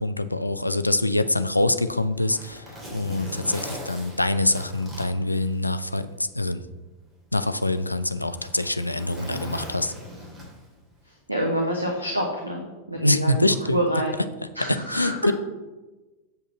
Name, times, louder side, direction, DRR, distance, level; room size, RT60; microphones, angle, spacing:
voice 1, 0.0-6.6 7.3-9.9 12.9-13.9 14.2-15.3, left 1 dB, 85° left, 11 dB, 0.5 m, -25 dB
Zipper (clothing), 1.6-6.1 6.5-6.6 7.4-10.8 12.0-12.2, equal, 15° right, 3.4 m, -40 dB
voice 2, 11.3-12.6 12.9-13.4 13.7-14.1 14.6-15.1, equal, 85° right, 0 dB, 1.2 m, -26 dB
8.1 x 5.4 x 6.3 m, 1.1 s
figure-of-eight pair, 90°, 0 cm